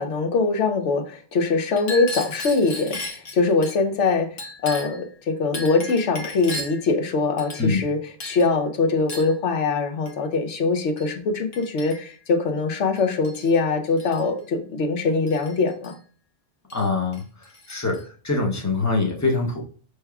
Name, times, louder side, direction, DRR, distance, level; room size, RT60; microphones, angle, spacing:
voice 1, 0.0-4.4 4.6-15.9, left 4 dB, 75° left, 6 dB, 1.0 m, -23 dB
Chink clink, 1.7-3.8 4.4-5.1 5.5-6.9 7.4-7.9 8.2-8.5 9.1-9.4 10.1-10.2 11.0-11.1 11.5-12.2 13.0-13.6 13.9-14.2 15.3-15.9 16.7-16.8 17.1-18.0, left 2 dB, 90° left, 1.3 m, -36 dB
voice 2, 16.7-19.7, left 3 dB, 20° left, 0 dB, 0.5 m, -24 dB
5.6 x 3.3 x 2.2 m, 0.41 s
omnidirectional pair, 1.2 m